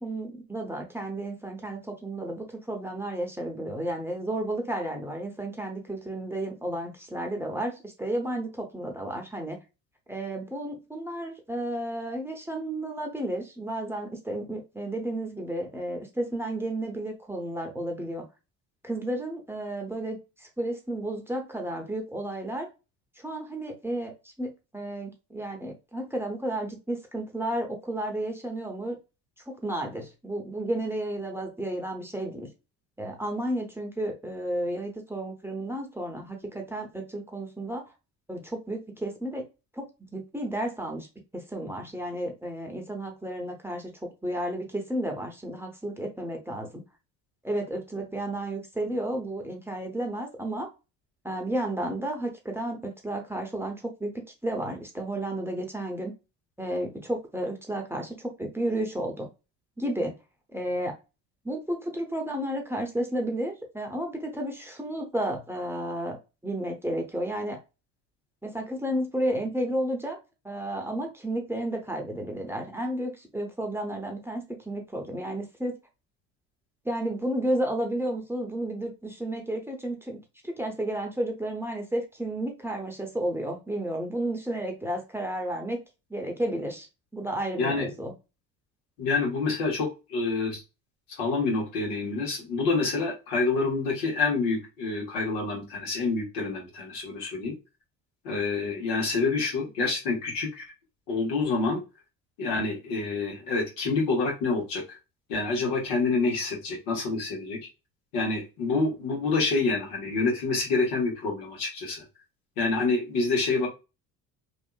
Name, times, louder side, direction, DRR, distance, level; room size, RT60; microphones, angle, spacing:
voice 1, 0.0-9.6 10.1-18.2 18.8-22.7 23.2-24.1 24.4-29.0 29.5-32.5 33.0-37.9 38.3-39.4 39.7-41.1 41.3-46.8 47.4-50.7 51.2-54.1 54.4-56.1 56.6-59.3 59.8-60.1 60.5-61.0 61.4-66.2 66.4-67.6 68.4-70.2 70.4-75.7 76.8-80.2 80.4-85.8 86.1-86.9 87.1-88.1, right 1 dB, 5° right, 2 dB, 0.8 m, -32 dB
voice 2, 87.6-87.9 89.0-90.6 91.2-97.5 98.2-100.6 101.1-101.8 102.4-105.0 105.3-107.6 108.1-112.0 112.6-113.7, left 3 dB, 75° left, -1 dB, 1.3 m, -27 dB
2.8 x 2.4 x 2.2 m, 0.28 s
hypercardioid pair, 65°, 39 cm